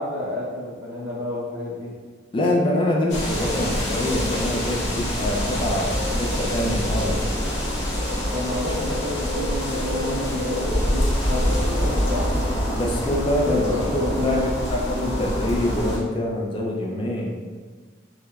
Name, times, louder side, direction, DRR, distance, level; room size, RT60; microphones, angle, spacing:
voice 1, 0.0-1.9 8.3-12.4 13.4-14.4, left 1 dB, 65° right, -13 dB, 1.0 m, -29 dB
voice 2, 2.3-7.2 12.7-17.3, left 1 dB, 25° left, -1 dB, 0.3 m, -25 dB
sound 1, 3.1-16.0, equal, 65° left, 0.8 m, -25 dB
4.4 x 2.1 x 2.3 m, 1.4 s
head